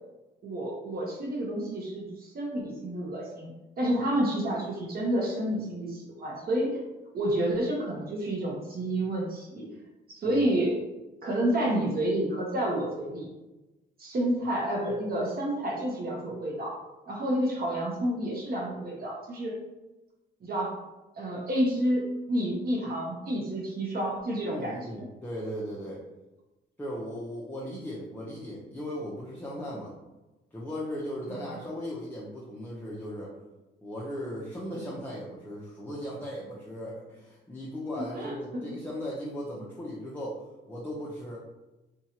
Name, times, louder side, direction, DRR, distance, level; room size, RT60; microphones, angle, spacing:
voice 1, 0.4-6.8 7.1-9.7 10.1-10.8 11.2-13.3 14.0-16.8 17.1-19.6 20.4-20.8 21.2-25.1 38.2-38.3, right 1 dB, 50° right, -2 dB, 0.8 m, -29 dB
voice 2, 24.5-26.0 26.8-29.9 30.5-33.3 33.8-41.4, equal, 10° left, -5 dB, 0.6 m, -37 dB
2.8 x 2.3 x 2.8 m, 1.0 s
cardioid pair, 90°, 20 cm